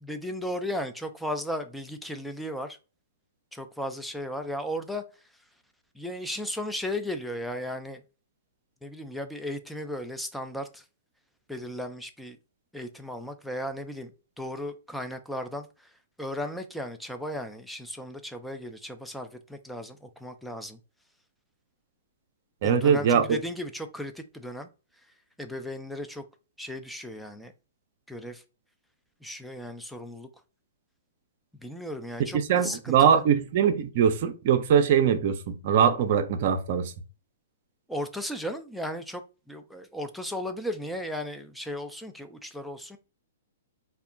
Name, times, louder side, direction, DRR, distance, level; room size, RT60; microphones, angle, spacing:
voice 1, 0.0-2.8 3.5-5.0 6.0-8.0 8.8-10.8 11.5-12.4 12.7-14.1 14.4-15.7 16.2-20.8 22.6-24.7 25.4-26.2 26.6-27.5 28.1-28.4 29.2-30.3 31.6-33.2 37.9-39.2 39.5-43.0, left 1 dB, ahead, 0.4 m, -35 dB
voice 2, 22.6-23.4 32.3-36.9, right 7 dB, 50° right, 0.5 m, -22 dB
2.3 x 2.0 x 3.8 m
figure-of-eight pair, 115°, 0 cm